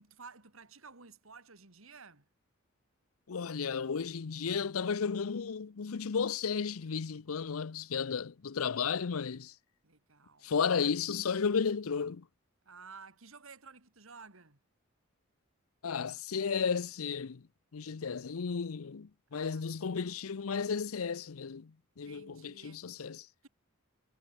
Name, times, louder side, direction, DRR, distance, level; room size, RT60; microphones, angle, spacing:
voice 1, 0.0-2.2 9.8-10.5 12.6-14.6 19.3-20.1 22.0-22.8 23.4-23.5, right 5 dB, 70° right, 2.8 m, -54 dB
voice 2, 3.3-9.5 10.4-12.2 15.8-17.4 17.7-23.3, left 6 dB, 85° left, 0.6 m, -33 dB
head